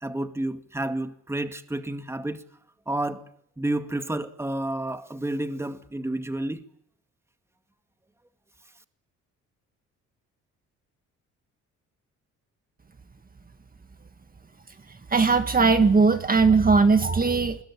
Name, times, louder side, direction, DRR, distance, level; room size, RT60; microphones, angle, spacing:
voice 1, 0.0-2.4 2.9-3.2 3.6-6.6, right 1 dB, 10° right, 2.0 m, -30 dB
voice 2, 15.1-17.6, right 4 dB, 30° right, 1.8 m, -19 dB
26.0 x 21.0 x 8.4 m
cardioid pair, 90°, 30 cm